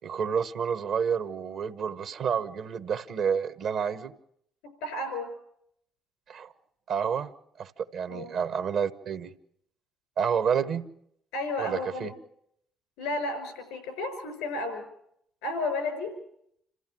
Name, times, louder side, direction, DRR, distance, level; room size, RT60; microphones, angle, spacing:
voice 1, 0.0-4.1 6.3-6.5 6.9-7.3 7.6-9.3 10.2-10.8 11.6-12.1, right 7 dB, 70° right, 12 dB, 1.1 m, -29 dB
voice 2, 4.6-5.3 8.1-8.3 11.3-12.1 13.0-14.9 15.4-16.1, left 2 dB, 85° left, 9 dB, 5.5 m, -32 dB
27.0 x 14.5 x 7.6 m, 0.72 s
hypercardioid pair, 60°, 0 cm